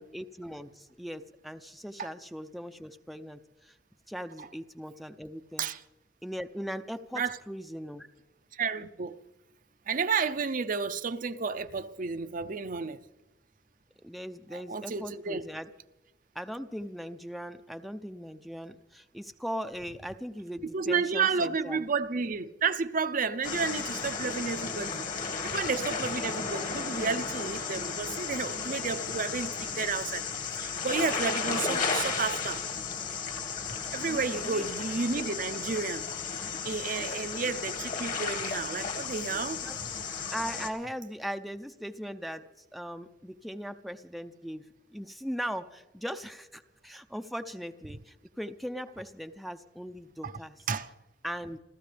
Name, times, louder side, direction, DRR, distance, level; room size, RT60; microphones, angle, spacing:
voice 1, 0.0-3.8 4.1-5.7 6.2-8.1 14.0-15.7 16.3-21.8 29.7-29.8 34.1-34.7 37.0-37.1 39.6-39.8 40.3-44.6 44.9-50.6 51.2-51.6, equal, ahead, 0.5 m, -39 dB
voice 2, 8.5-9.2 9.9-13.0 14.5-15.4 20.7-25.0 25.4-30.2 30.6-32.7 33.9-36.1 36.6-39.6 50.2-50.3 50.7-50.9, right 5 dB, 50° right, 0.6 m, -31 dB
sound 1, 23.4-40.7, left 5 dB, 45° left, 1.7 m, -34 dB
29.5 x 13.5 x 3.4 m
head